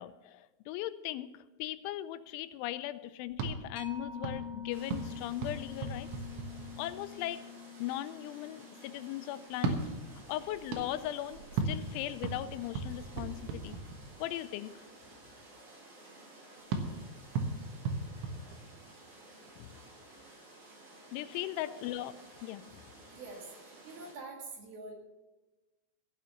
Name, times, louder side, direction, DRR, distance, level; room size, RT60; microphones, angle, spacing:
voice 1, 0.0-6.1 6.8-7.4 7.8-9.9 10.3-13.8 14.2-14.8 19.6-19.7 21.1-22.1 22.4-22.8, left 14 dB, 90° left, 13 dB, 3.1 m, -38 dB
sound 1, 3.3-7.1 9.5-14.4 16.7-19.1, right 3 dB, 85° right, 3.9 m, -38 dB
Mallet percussion, 3.8-10.8, left 8 dB, 65° left, 2.3 m, -46 dB
sound 2, 4.7-24.1, right 2 dB, 40° right, 4.9 m, -54 dB
voice 2, 23.1-24.9, right 3 dB, 60° right, 0 dB, 3.8 m, -46 dB
15.5 x 7.5 x 7.1 m, 1.1 s
omnidirectional pair, 5.4 m